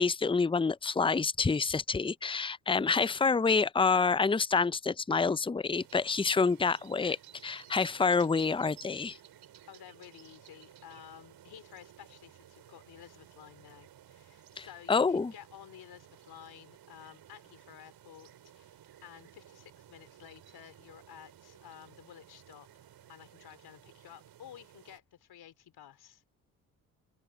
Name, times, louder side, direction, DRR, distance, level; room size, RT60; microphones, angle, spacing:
voice 1, 0.0-7.2 7.4-9.2 14.6-15.3, left 4 dB, 10° left, 0.8 m, -27 dB
sound 1, 5.7-25.0, right 11 dB, 60° right, 7.4 m, -56 dB
voice 2, 9.7-26.2, left 11 dB, 55° left, 4.1 m, -53 dB
hypercardioid pair, 50°, 44 cm